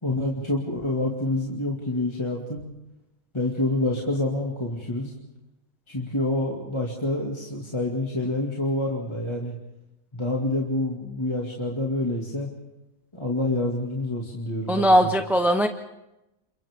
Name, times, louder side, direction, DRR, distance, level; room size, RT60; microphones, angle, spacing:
voice 1, 0.0-2.6 3.3-5.2 5.9-9.5 10.1-12.5 13.1-15.1, left 1 dB, 15° left, -2 dB, 2.4 m, -27 dB
voice 2, 14.7-15.7, equal, ahead, 6 dB, 0.6 m, -19 dB
29.5 x 28.0 x 3.7 m, 0.92 s
omnidirectional pair, 1.7 m